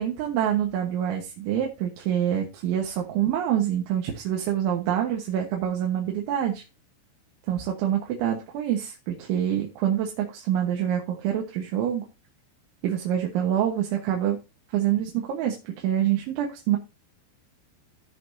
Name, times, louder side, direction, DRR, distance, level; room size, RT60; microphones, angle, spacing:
voice 1, 0.0-6.6 7.5-12.1 12.8-14.4 14.7-16.8, right 10 dB, 85° right, 1 dB, 3.8 m, -26 dB
16.0 x 6.0 x 2.8 m, 0.28 s
omnidirectional pair, 5.2 m